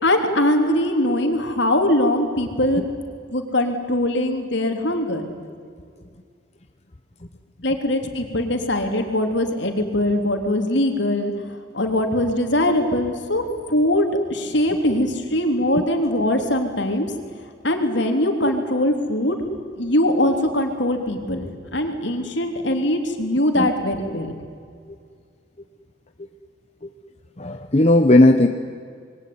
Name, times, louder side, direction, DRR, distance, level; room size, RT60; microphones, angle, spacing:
voice 1, 0.0-2.8 3.3-5.2 7.6-17.1 17.6-19.4 19.8-24.3, left 1 dB, 65° left, 4 dB, 3.5 m, -21 dB
voice 2, 27.4-28.5, left 1 dB, 35° left, 6 dB, 1.0 m, -15 dB
27.0 x 22.0 x 9.6 m, 2.2 s
head